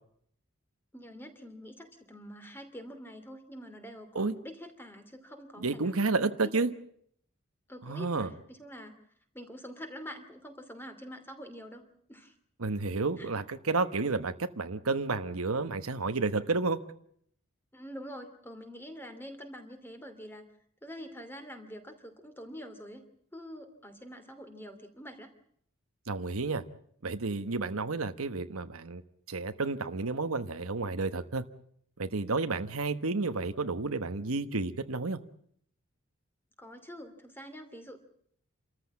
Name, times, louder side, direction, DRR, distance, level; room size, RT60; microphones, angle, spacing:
voice 1, 0.9-6.6 7.7-9.0 9.3-12.3 13.2-13.3 17.7-20.5 20.8-23.0 23.3-25.3 36.6-38.0, equal, 10° left, 7 dB, 2.6 m, -46 dB
voice 2, 5.6-6.7 7.9-8.3 12.6-16.8 26.1-26.6 27.0-29.0 29.3-31.4 32.0-35.2, right 3 dB, 90° right, 10 dB, 1.2 m, -31 dB
28.5 x 14.0 x 8.6 m, 0.67 s
head